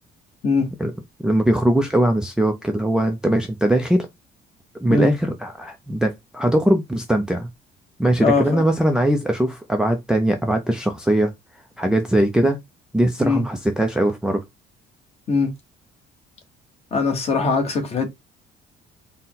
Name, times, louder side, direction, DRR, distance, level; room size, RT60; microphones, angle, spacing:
voice 1, 1.2-4.1 4.8-7.5 8.0-11.3 11.8-12.6 12.9-14.4, right 1 dB, 5° right, 0.4 m, -20 dB
voice 2, 8.2-8.7 13.2-13.4 15.3-15.5 16.9-18.1, left 4 dB, 35° left, 1.0 m, -21 dB
4.1 x 2.1 x 3.8 m
cardioid pair, 165°, 19 cm